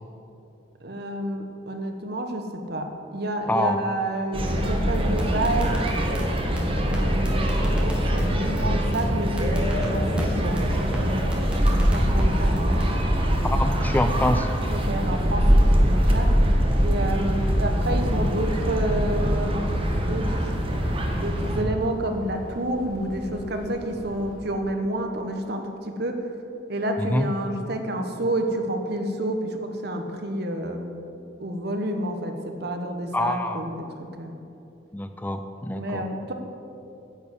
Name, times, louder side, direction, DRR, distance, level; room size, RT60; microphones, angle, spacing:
voice 1, 0.8-5.8 6.7-7.6 7.8-12.9 14.7-16.3 16.8-19.6 19.9-20.4 21.1-26.3 26.7-31.0 31.4-33.9 34.2-34.3 35.7-36.3, right 1 dB, 60° right, 5 dB, 1.2 m, -29 dB
sound 1, 4.3-21.6, equal, 30° right, 1.3 m, -23 dB
sound 2, 4.9-6.2 6.6-6.7 6.9-7.0 7.2-8.2 8.6-8.7 8.9-9.0 9.4-10.3 10.6-10.7 10.9-11.0 11.3-12.2 12.6-12.9, equal, 5° right, 1.6 m, -38 dB
voice 2, 13.4-14.5 17.0-17.1 27.0-27.3 33.1-33.6 34.9-36.0, left 1 dB, 10° left, 7 dB, 0.4 m, -26 dB
sound 3, 19.3-24.4, equal, 50° left, 2.7 m, -44 dB
10.0 x 7.2 x 8.3 m, 2.7 s
head